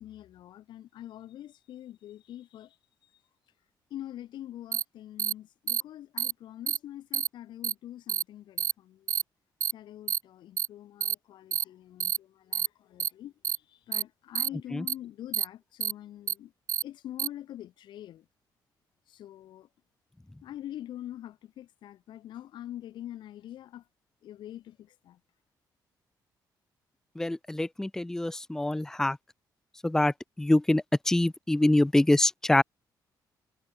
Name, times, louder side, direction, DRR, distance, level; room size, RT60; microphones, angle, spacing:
voice 1, 0.0-2.8 3.9-9.1 9.7-16.5 16.8-18.3 19.1-19.7 20.4-23.8 24.2-25.2, left 12 dB, 85° left, 7.4 m, -44 dB
sound 1, 4.7-4.8 5.2-5.3 5.7-5.8 6.2-6.3 6.7-6.8 7.1-7.3 7.6-7.7 8.1-8.2 8.6-8.7 9.1-9.2 9.6-9.7 10.1-10.2 10.6-10.7 11.0-11.1 11.5-11.6 12.0-12.2 12.5-12.7 13.0-13.1 13.4-13.6 13.9-14.0 14.4-14.5 14.9-15.0 15.3-15.5 15.8-15.9 16.3-16.4 16.7-16.8 17.2-17.3, right 9 dB, 45° right, 0.5 m, -28 dB
voice 2, 27.2-29.2 29.8-32.6, left 1 dB, 5° left, 1.1 m, -25 dB
cardioid pair, 175°, 8 cm